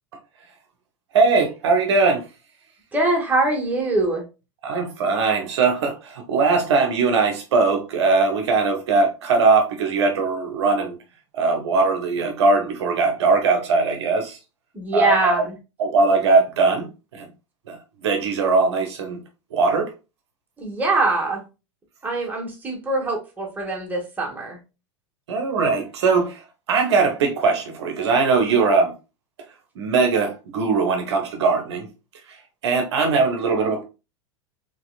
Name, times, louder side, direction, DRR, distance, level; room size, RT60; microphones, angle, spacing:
voice 1, 1.1-2.2 4.6-11.0 11.3-14.4 14.9-15.5 15.8-17.3 17.7-19.2 19.5-19.9 25.3-26.4 26.7-28.9 29.8-31.9 32.3-32.4 32.6-33.8, right 4 dB, 60° right, 0.8 m, -20 dB
voice 2, 2.9-4.2 14.7-15.5 20.6-21.4 22.0-24.6, right 2 dB, 10° right, 1.3 m, -23 dB
4.3 x 3.1 x 2.3 m
figure-of-eight pair, 90°, 16 cm